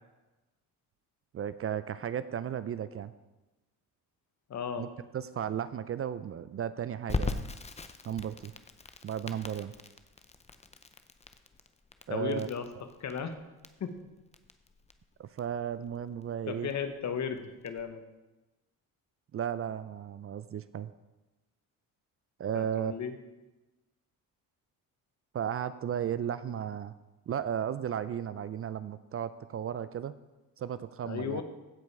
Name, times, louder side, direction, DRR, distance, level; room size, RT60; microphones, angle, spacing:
voice 1, 1.3-3.1 4.8-4.9 5.1-7.4 8.1-8.5 9.0-9.7 12.1-12.5 15.2-16.7 19.3-20.9 22.4-22.9 25.3-26.9 27.3-30.1 30.6-31.4, right 9 dB, 40° right, 14 dB, 0.4 m, -34 dB
voice 2, 4.5-4.9 12.1-12.6 13.0-13.4 13.8-13.9 16.5-18.0 22.5-23.1 31.0-31.4, left 7 dB, 50° left, 8 dB, 1.2 m, -35 dB
Crackle, 7.1-17.8, left 4 dB, 20° left, 0.6 m, -40 dB
15.5 x 5.2 x 4.7 m, 1.1 s
cardioid pair, 90°, 35 cm